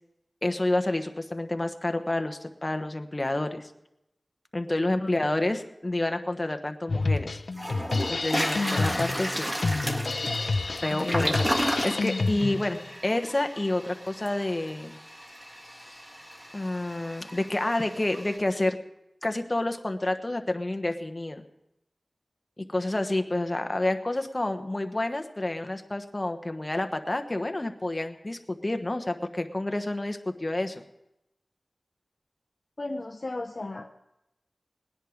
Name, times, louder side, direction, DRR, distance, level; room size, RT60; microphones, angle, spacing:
voice 1, 0.4-3.7 4.5-7.4 8.1-9.5 10.7-15.0 15.8-16.0 16.5-18.8 19.2-21.4 22.6-30.8, left 2 dB, 35° left, 7 dB, 1.2 m, -29 dB
Drum kit, 6.9-12.9, left 3 dB, 85° left, 0.5 m, -29 dB
Toilet flush, 7.0-7.1 7.6-18.4, equal, 15° right, 1.7 m, -34 dB
voice 2, 11.0-11.4 32.8-33.9, left 2 dB, 55° left, 4 dB, 0.7 m, -34 dB
19.0 x 10.0 x 5.1 m, 0.87 s
wide cardioid pair, 55°, 0 cm